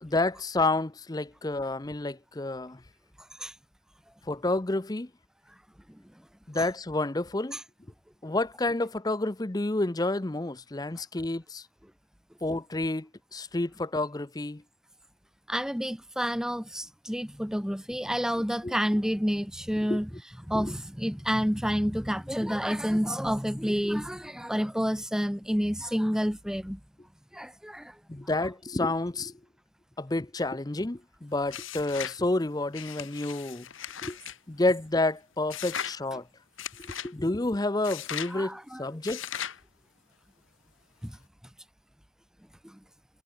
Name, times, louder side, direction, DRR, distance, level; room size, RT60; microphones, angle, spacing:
voice 1, 0.0-2.8 4.3-5.1 6.5-7.6 8.2-11.7 12.4-14.6 18.6-18.7 19.9-20.0 20.5-20.7 28.1-29.3 30.0-33.7 34.0-34.2 34.5-36.2 37.0-39.5, left 2 dB, 20° left, 0.6 m, -29 dB
voice 2, 3.2-3.5 6.5-6.6 7.5-7.6 15.5-20.1 20.5-26.8 27.3-28.0 38.3-38.9 41.0-41.2 42.6-42.8, equal, 5° right, 1.8 m, -29 dB
sound 1, 31.5-32.2 32.7-34.4 35.5-36.0 36.6-37.1 37.8-38.3 39.0-39.6, left 9 dB, 75° left, 1.5 m, -37 dB
head